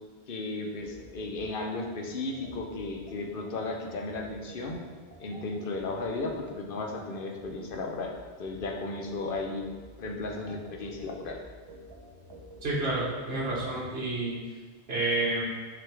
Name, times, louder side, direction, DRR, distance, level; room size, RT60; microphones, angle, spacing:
voice 1, 0.3-4.8 5.2-8.1 8.4-9.6 10.0-11.4, left 3 dB, 55° left, 1 dB, 0.9 m, -35 dB
sound 1, 0.8-13.9, right 1 dB, 25° right, 0.7 m, -49 dB
voice 2, 12.6-14.4 14.9-15.4, right 2 dB, 65° right, -6 dB, 1.5 m, -29 dB
7.6 x 3.9 x 3.4 m, 1.4 s
omnidirectional pair, 1.1 m